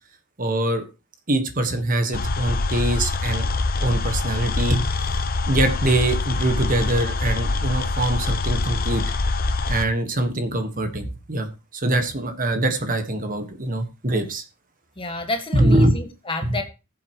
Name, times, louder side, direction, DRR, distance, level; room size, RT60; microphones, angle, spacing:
voice 1, 0.4-0.8 1.3-3.4 3.8-4.9 5.5-9.0 9.7-14.4 15.5-15.9, right 1 dB, 40° right, 7 dB, 1.5 m, -23 dB
sound 1, 2.1-9.9, left 3 dB, 45° left, 0.8 m, -24 dB
voice 2, 15.0-16.6, left 2 dB, 25° left, 5 dB, 1.7 m, -29 dB
19.5 x 7.7 x 3.0 m, 0.30 s
head